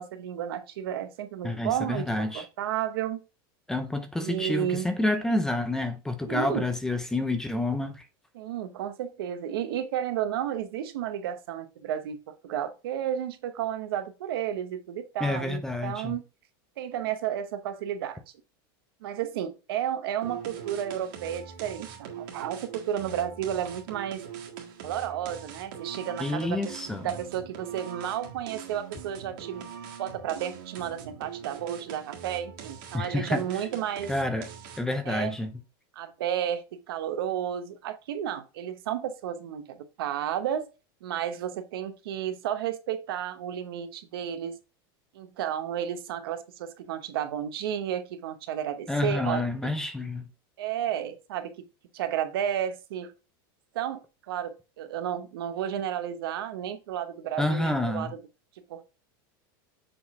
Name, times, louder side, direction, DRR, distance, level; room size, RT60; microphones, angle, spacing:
voice 1, 0.0-3.2 4.2-4.9 6.3-6.7 8.3-16.2 16.8-18.2 19.0-24.2 24.8-26.8 27.0-29.6 30.0-34.1 35.0-35.3 35.9-40.7 41.0-44.6 45.1-49.5 50.6-51.7 51.9-53.1 53.7-54.0 54.3-54.5 54.8-58.2 58.7-58.8, right 10 dB, 80° right, 1.0 m, -32 dB
voice 2, 1.4-2.4 3.7-8.0 15.2-16.2 26.2-27.1 32.9-33.4 34.1-34.5 34.8-35.5 48.9-50.2 57.4-58.1, left 2 dB, 5° left, 0.4 m, -28 dB
sound 1, 20.2-35.0, right 8 dB, 60° right, 1.7 m, -42 dB
6.9 x 3.9 x 3.6 m
supercardioid pair, 170°, 12 cm